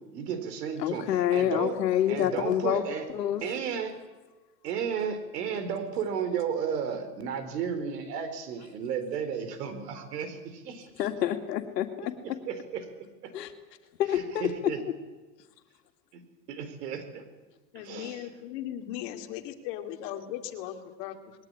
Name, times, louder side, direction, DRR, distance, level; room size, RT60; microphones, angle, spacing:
voice 1, 0.0-1.8 2.1-3.1 3.4-3.9 4.6-10.9 12.2-12.9 13.2-13.3 14.1-14.8 16.1-16.2 16.5-17.2 17.7-18.3, right 7 dB, 75° right, 10 dB, 4.5 m, -33 dB
voice 2, 0.8-2.8 3.1-3.4 11.0-12.4 13.3-13.5 14.0-14.7, left 10 dB, 85° left, 7 dB, 2.7 m, -27 dB
voice 3, 17.7-21.3, left 11 dB, 50° left, 6 dB, 2.7 m, -38 dB
21.0 x 18.5 x 9.9 m, 1.2 s
supercardioid pair, 140°, 48 cm